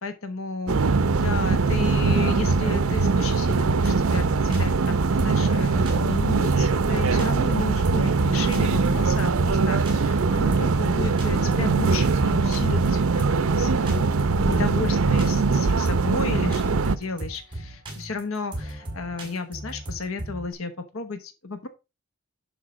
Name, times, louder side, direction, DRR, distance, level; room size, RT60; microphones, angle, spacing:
voice 1, 0.0-0.8 1.1-13.0 13.3-14.1 14.3-21.7, left 3 dB, 75° left, 9 dB, 1.1 m, -33 dB
sound 1, 0.7-17.0, right 4 dB, 85° right, 0.6 m, -22 dB
sound 2, 3.5-20.5, right 1 dB, 25° right, 4.8 m, -37 dB
11.0 x 4.7 x 5.0 m, 0.27 s
head